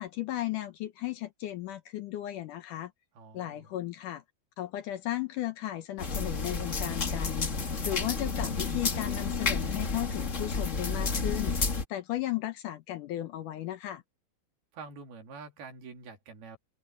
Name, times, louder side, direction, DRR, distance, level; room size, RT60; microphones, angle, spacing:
voice 1, 0.0-2.9 3.3-4.2 4.6-7.5 7.8-11.6 11.9-14.0, left 14 dB, 70° left, 2.1 m, -35 dB
voice 2, 3.1-3.7 14.7-16.6, right 4 dB, 80° right, 5.1 m, -46 dB
sound 1, 6.0-11.8, left 4 dB, 50° left, 0.8 m, -31 dB
open air
omnidirectional pair, 4.4 m